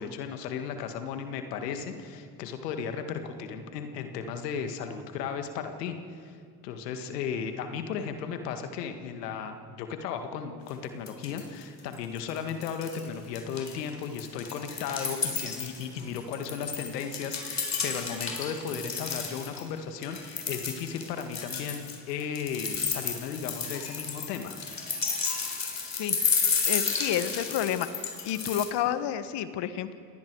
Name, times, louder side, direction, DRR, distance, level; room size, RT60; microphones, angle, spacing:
voice 1, 0.0-6.4 6.6-24.5, left 7 dB, 80° left, 7 dB, 1.9 m, -35 dB
sound 1, 10.7-10.8 11.1-11.6 11.9-13.1 13.4-19.6 20.0-28.7, left 5 dB, 35° left, 4.2 m, -32 dB
voice 2, 26.7-27.9 28.2-29.9, left 10 dB, 60° left, 12 dB, 1.5 m, -29 dB
28.5 x 19.0 x 4.8 m, 2.4 s
hypercardioid pair, 65°, 47 cm